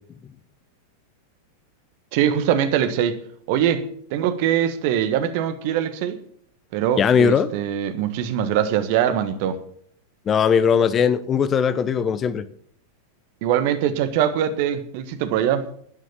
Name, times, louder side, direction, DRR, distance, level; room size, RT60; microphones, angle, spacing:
voice 1, 2.1-3.2 3.5-3.8 4.1-6.2 6.7-9.6 13.4-15.7, right 10 dB, 50° right, 1.5 m, -22 dB
voice 2, 7.0-7.5 10.3-12.5, left 7 dB, 25° left, 0.8 m, -19 dB
11.0 x 9.9 x 7.4 m
figure-of-eight pair, 90°, 0 cm